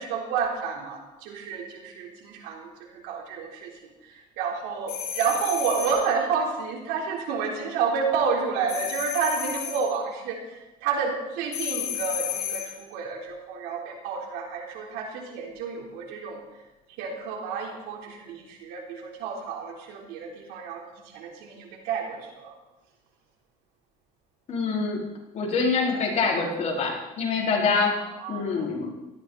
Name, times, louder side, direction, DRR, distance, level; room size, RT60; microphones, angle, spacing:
voice 1, 0.0-3.7 4.0-16.4 17.0-20.9 21.1-22.5 28.0-28.7, right 5 dB, 85° right, 1 dB, 3.6 m, -30 dB
sound 1, 4.9-6.1 8.7-9.9 11.5-12.8, left 9 dB, 70° left, 4.9 m, -32 dB
voice 2, 24.5-25.0 25.3-28.0 28.3-28.9, left 4 dB, 45° left, -2 dB, 4.6 m, -25 dB
18.0 x 14.0 x 4.1 m, 1.0 s
cardioid pair, 110°, 16 cm